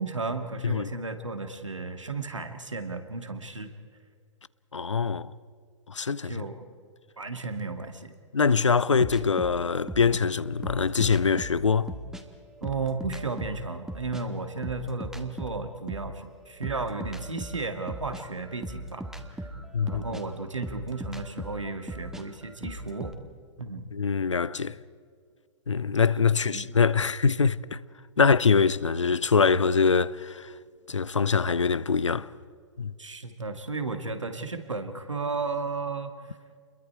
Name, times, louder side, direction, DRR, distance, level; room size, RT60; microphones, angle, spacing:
voice 1, 0.0-3.7 6.3-6.7 7.2-8.1 12.6-19.1 19.8-23.1 23.6-23.9 26.5-26.7 28.2-28.3 33.0-36.2, right 3 dB, 85° right, 2.0 m, -34 dB
voice 2, 4.7-5.3 5.9-6.4 8.3-11.9 19.7-20.0 23.9-24.8 25.7-27.8 28.2-30.5 30.9-32.3 32.8-32.9, left 5 dB, 80° left, 0.7 m, -24 dB
sound 1, 9.0-12.2 12.6-16.2 16.6-23.1, right 1 dB, 5° right, 1.6 m, -38 dB
29.0 x 22.0 x 4.6 m
figure-of-eight pair, 110°, 15 cm